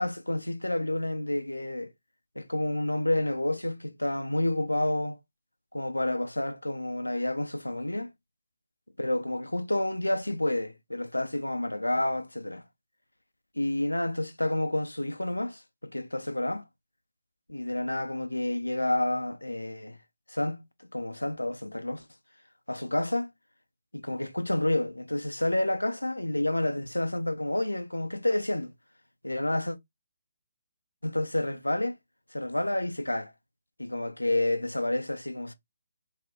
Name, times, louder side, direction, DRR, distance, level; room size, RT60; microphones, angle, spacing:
voice 1, 0.0-1.9 2.4-5.2 5.7-8.1 9.0-12.6 13.6-16.7 17.5-20.0 20.3-22.1 22.7-23.3 23.9-28.7 29.2-29.8 31.0-32.0 32.3-33.3 33.8-35.5, left 1 dB, 85° left, 0.4 m, -29 dB
2.1 x 2.0 x 3.4 m
figure-of-eight pair, 140°, 0 cm